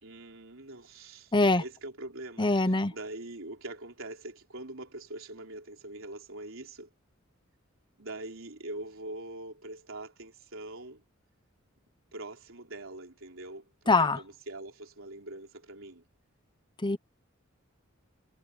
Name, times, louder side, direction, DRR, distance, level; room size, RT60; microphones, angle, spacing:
voice 1, 0.0-6.9 8.0-11.0 12.1-16.0, right 2 dB, 75° right, 3.8 m, -43 dB
voice 2, 1.3-1.6 2.4-2.9 13.9-14.2 16.8-17.0, left 2 dB, 25° left, 0.9 m, -23 dB
head